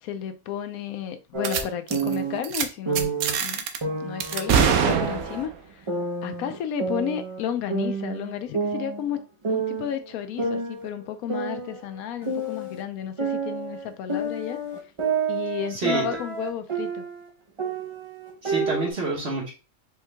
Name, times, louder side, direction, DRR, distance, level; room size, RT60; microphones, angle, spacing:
voice 1, 0.0-3.1 3.4-3.6 4.0-5.9 6.2-9.2 9.5-14.6 15.3-17.0, left 9 dB, 90° left, 1.1 m, -32 dB
sound 1, 1.3-2.4 2.9-3.3 3.8-5.4 5.9-7.4 7.7-9.2 9.4-10.0 10.4-12.8 13.2-17.3 17.6-18.9, right 4 dB, 30° right, 0.5 m, -29 dB
sound 2, 1.4-1.6 1.9-2.1 2.4-2.6 3.0-3.8 4.2-5.5, right 7 dB, 85° right, 1.1 m, -23 dB
voice 2, 15.7-16.0 18.4-19.5, right 3 dB, 50° right, 1.7 m, -27 dB
4.5 x 3.8 x 2.2 m
omnidirectional pair, 1.5 m